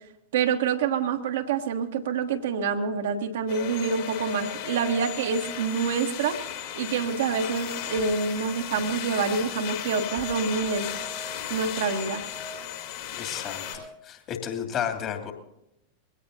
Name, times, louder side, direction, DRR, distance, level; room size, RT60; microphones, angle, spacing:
voice 1, 0.3-6.5 6.8-10.9 11.5-12.2, right 5 dB, 60° right, 5 dB, 1.3 m, -27 dB
sound 1, 3.5-13.8, left 9 dB, 50° left, 3.7 m, -35 dB
voice 2, 13.2-13.6 14.1-15.3, left 8 dB, 35° left, 5 dB, 2.7 m, -31 dB
22.5 x 17.0 x 2.7 m, 0.87 s
figure-of-eight pair, 90°, 0 cm